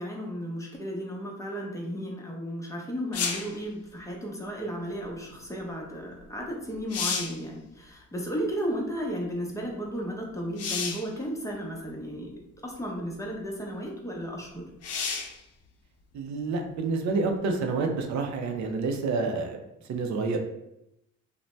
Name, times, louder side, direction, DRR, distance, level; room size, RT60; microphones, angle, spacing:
voice 1, 0.0-12.3 12.6-14.6, equal, 10° left, -1 dB, 0.6 m, -34 dB
sound 1, 3.1-3.6 6.2-6.3 6.7-7.4 10.6-11.1 12.1-12.2 14.8-15.4 19.0-19.1, left 5 dB, 55° left, 0.5 m, -31 dB
voice 2, 16.1-19.6 19.8-20.4, right 3 dB, 65° right, 4 dB, 0.5 m, -28 dB
2.6 x 2.1 x 3.1 m, 0.85 s
cardioid pair, 90°, 30 cm